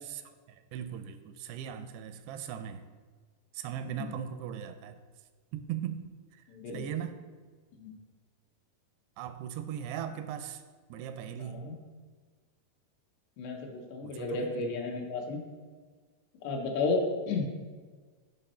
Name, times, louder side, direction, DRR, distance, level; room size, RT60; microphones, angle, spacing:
voice 1, 0.0-2.9 3.5-5.0 5.5-7.2 9.2-10.6 10.9-11.7 14.0-14.6, right 9 dB, 85° right, 9 dB, 2.6 m, -39 dB
voice 2, 6.5-6.8 7.7-7.9 11.4-11.7 13.4-15.4 16.4-17.5, left 3 dB, 85° left, 2 dB, 3.2 m, -33 dB
10.5 x 5.4 x 4.3 m, 1.5 s
omnidirectional pair, 4.7 m